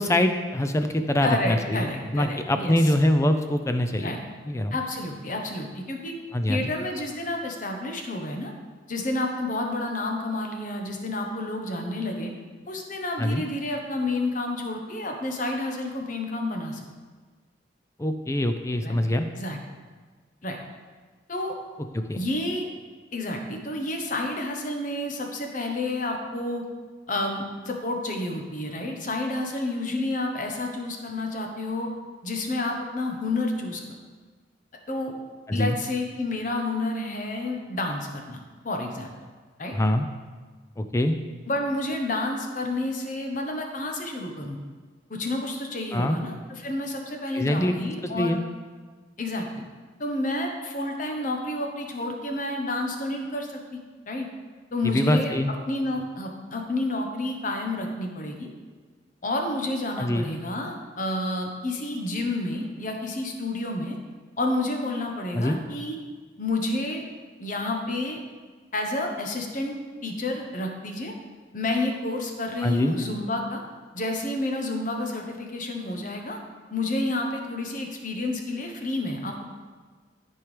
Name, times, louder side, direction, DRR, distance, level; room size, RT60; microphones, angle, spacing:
voice 1, 0.0-1.9 2.1-4.1 4.5-4.8 6.3-6.6 13.2-13.4 18.0-19.3 21.9-22.2 35.5-35.8 39.7-40.1 40.8-41.2 45.9-46.2 47.3-47.7 48.1-48.4 54.8-55.5 60.0-60.3 65.3-65.6 72.6-73.0, left 1 dB, 15° left, 7 dB, 0.4 m, -24 dB
voice 2, 1.2-2.7 3.9-4.2 4.7-6.1 6.5-8.5 8.9-12.3 12.6-16.8 18.8-19.0 19.3-19.6 20.4-20.6 21.3-21.5 22.1-22.7 23.1-26.6 27.1-31.9 32.2-33.8 34.9-35.1 35.5-39.1 39.6-39.8 41.5-44.6 45.1-48.4 49.2-49.6 50.0-53.6 54.1-54.3 54.7-55.3 55.7-58.5 59.2-64.0 64.4-66.0 66.4-67.0 67.4-68.2 68.7-69.8 70.0-71.1 71.5-73.6 73.9-76.4 76.7-79.4, left 2 dB, 45° left, 3 dB, 1.0 m, -30 dB
13.5 x 4.5 x 3.3 m, 1.4 s
head